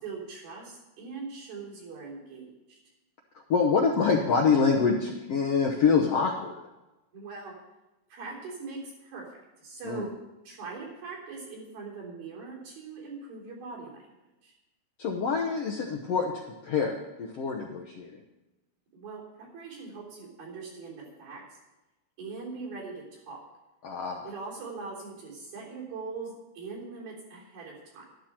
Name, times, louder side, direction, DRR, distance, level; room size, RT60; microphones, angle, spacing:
voice 1, 0.0-2.8 7.1-7.5 8.1-9.3 9.6-10.1 10.5-14.0 14.4-14.5 18.9-21.4 22.2-23.4 24.2-28.1, right 4 dB, 85° right, -4 dB, 5.6 m, -41 dB
voice 2, 3.5-6.6 9.8-10.1 15.0-16.3 16.6-18.2 23.8-24.3, left 5 dB, 75° left, 1 dB, 1.4 m, -26 dB
12.5 x 12.0 x 4.4 m, 1.0 s
omnidirectional pair, 4.1 m